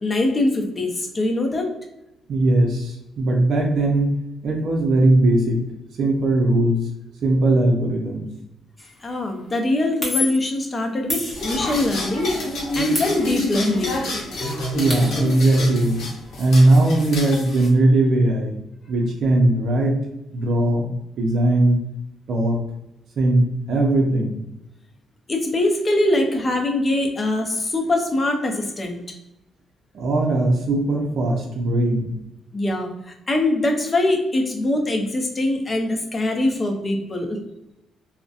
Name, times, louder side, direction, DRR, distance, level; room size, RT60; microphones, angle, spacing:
voice 1, 0.0-1.7 9.0-12.4 12.7-14.0 25.3-29.0 32.5-37.4, left 2 dB, 30° left, 3 dB, 0.5 m, -22 dB
voice 2, 2.3-4.1 4.4-5.6 6.0-6.8 7.2-8.3 14.7-16.0 16.4-18.6 18.9-20.0 20.3-20.9 21.2-21.8 22.3-22.6 23.2-24.4 29.9-32.1, right 2 dB, 65° right, 0 dB, 0.5 m, -19 dB
sound 1, 8.8-9.0 10.0-10.6 11.1-11.9 12.9-13.8 14.1-14.2 14.5-15.4, left 3 dB, 5° left, 0.8 m, -30 dB
sound 2, 11.3-17.7, left 1 dB, 70° left, 0.7 m, -28 dB
2.6 x 2.1 x 2.4 m, 0.87 s
cardioid pair, 90°, 0 cm